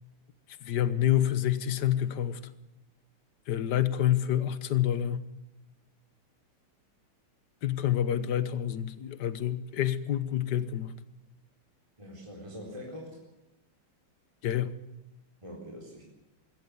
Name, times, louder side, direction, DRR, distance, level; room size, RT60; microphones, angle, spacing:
voice 1, 0.6-2.4 3.5-5.3 7.6-10.9 14.4-14.7, left 11 dB, 55° left, 13 dB, 1.6 m, -28 dB
voice 2, 12.0-13.2 15.4-16.0, equal, 15° right, -2 dB, 4.1 m, -43 dB
21.5 x 16.5 x 8.3 m, 0.95 s
omnidirectional pair, 2.4 m